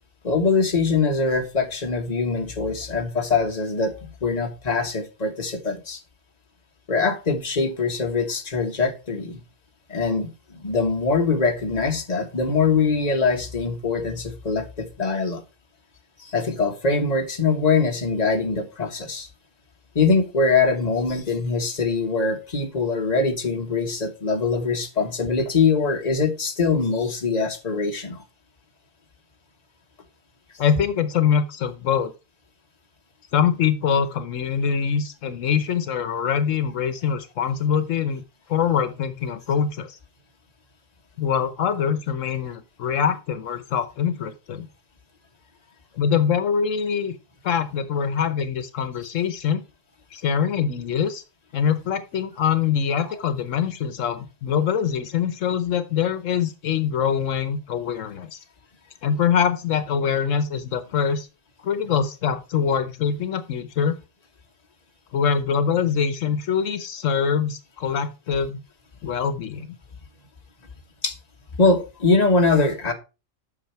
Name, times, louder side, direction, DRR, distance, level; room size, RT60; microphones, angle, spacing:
voice 1, 0.2-3.9 4.2-6.0 6.9-9.4 9.9-15.4 16.2-19.3 19.9-28.2 71.0-71.2 71.6-72.9, left 4 dB, 35° left, 1.4 m, -23 dB
voice 2, 30.6-32.1 33.3-38.2 38.5-40.0 41.2-44.7 46.0-47.2 47.4-49.6 50.1-51.2 51.5-58.4 59.0-61.3 61.6-64.0 65.1-68.6 69.0-69.8, left 7 dB, 75° left, 1.2 m, -24 dB
8.6 x 6.0 x 4.5 m
omnidirectional pair, 1.3 m